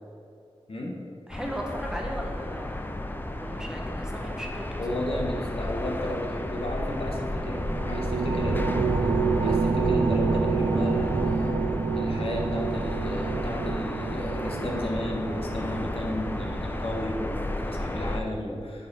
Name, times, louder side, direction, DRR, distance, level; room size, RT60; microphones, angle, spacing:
voice 1, 0.7-1.0 4.8-8.8 9.4-11.5 11.9-18.9, left 1 dB, 65° left, -1 dB, 1.3 m, -33 dB
sound 1, 1.3-18.2, left 1 dB, 20° left, 0.5 m, -32 dB
voice 2, 1.3-3.0 3.4-5.0, equal, 5° right, 0 dB, 1.1 m, -37 dB
sound 2, 6.5-16.0, right 2 dB, 90° right, 1.3 m, -50 dB
sound 3, 7.3-17.1, right 5 dB, 50° right, 0.4 m, -28 dB
9.2 x 5.6 x 4.1 m, 2.5 s
wide cardioid pair, 80°, 11 cm